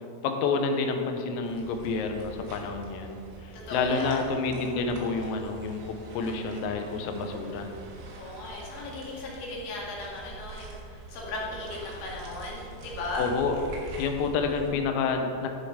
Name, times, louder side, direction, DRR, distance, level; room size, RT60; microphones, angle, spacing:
voice 1, 0.2-3.2 3.4-7.7 13.2-13.5 14.0-15.5, left 4 dB, 90° left, 5 dB, 3.5 m, -29 dB
sound 1, 1.4-14.7, right 3 dB, 70° right, 3.6 m, -44 dB
voice 2, 3.5-4.2 8.1-13.3, left 2 dB, 65° left, -3 dB, 3.8 m, -37 dB
13.5 x 5.7 x 5.0 m, 2.6 s
omnidirectional pair, 6.0 m